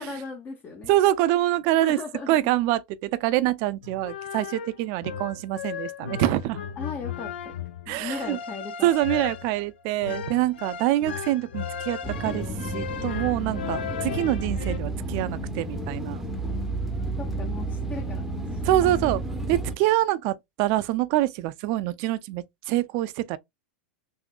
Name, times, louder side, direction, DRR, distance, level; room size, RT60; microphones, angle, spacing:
voice 1, 0.0-0.9 1.8-2.5 6.8-7.6 7.9-8.9 17.2-19.2, left 4 dB, 30° left, 0.8 m, -37 dB
voice 2, 0.9-2.0 2.3-6.6 7.9-8.4 8.8-12.5 12.7-16.2 18.6-19.2 19.5-23.4, right 14 dB, 50° right, 0.4 m, -25 dB
sound 1, 3.8-14.8, left 7 dB, 75° left, 0.5 m, -36 dB
sound 2, 12.0-19.7, right 2 dB, 5° right, 0.7 m, -31 dB
3.6 x 2.7 x 2.3 m
hypercardioid pair, 95°, 6 cm